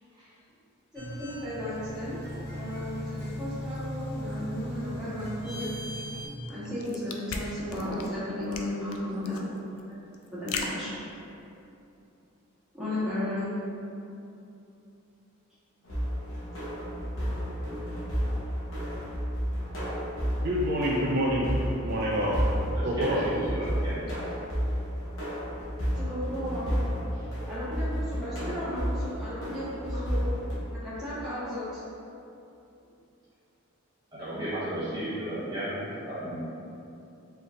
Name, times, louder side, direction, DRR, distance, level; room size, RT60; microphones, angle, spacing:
sound 1, 0.9-6.3, equal, 15° left, 1.4 m, -37 dB
voice 1, 0.9-2.2 2.5-5.7 6.5-9.4 10.3-11.0 12.7-13.5 18.8-18.9 25.9-26.7 27.5-30.3 30.8-31.8, left 1 dB, 5° right, -13 dB, 1.4 m, -34 dB
sound 2, 6.4-11.6, left 4 dB, 80° left, 0.4 m, -38 dB
sound 3, 15.8-30.6, equal, 60° left, 1.1 m, -32 dB
voice 2, 20.4-21.5 21.8-22.4 22.8-23.2, equal, 45° right, -4 dB, 0.4 m, -27 dB
voice 3, 22.5-24.0 25.2-25.3 27.1-27.3 30.7-31.1 34.1-36.4, right 1 dB, 20° right, -12 dB, 0.8 m, -35 dB
4.8 x 3.1 x 2.8 m, 2.8 s
head